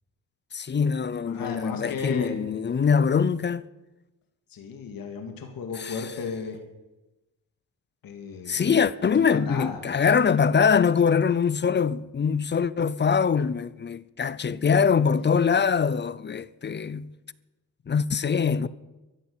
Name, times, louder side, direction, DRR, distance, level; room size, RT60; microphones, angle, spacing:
voice 1, 0.5-3.6 5.8-6.0 8.5-17.1 17.9-18.7, left 6 dB, 30° left, 0.6 m, -23 dB
voice 2, 1.3-2.4 4.5-6.6 8.0-8.6 9.1-9.8, left 5 dB, 85° left, 2.5 m, -34 dB
15.0 x 11.0 x 8.9 m
cardioid pair, 120°, 34 cm